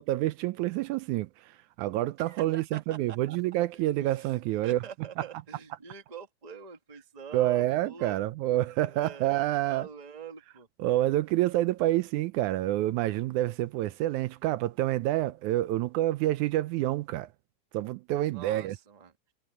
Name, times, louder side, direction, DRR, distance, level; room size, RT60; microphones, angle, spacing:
voice 1, 0.0-4.8 7.3-9.9 10.8-17.3 17.7-18.8, right 15 dB, 80° right, 2.0 m, -28 dB
voice 2, 2.2-3.4 4.0-4.3 4.6-8.1 8.8-10.7 18.3-19.1, right 7 dB, 20° right, 1.2 m, -44 dB
omnidirectional pair, 3.5 m